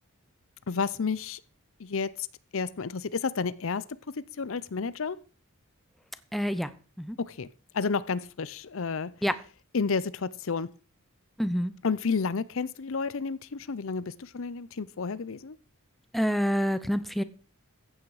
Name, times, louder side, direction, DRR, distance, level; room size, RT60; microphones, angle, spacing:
voice 1, 0.7-1.4 1.8-2.3 2.5-3.8 4.4-5.2 7.2-7.5 7.7-9.1 9.7-10.7 11.8-15.6, left 5 dB, 65° left, 18 dB, 0.6 m, -31 dB
voice 2, 6.3-6.7 7.0-7.2 9.2-9.4 11.4-11.7 16.1-17.2, equal, ahead, 12 dB, 0.7 m, -27 dB
14.5 x 8.7 x 4.8 m, 0.37 s
head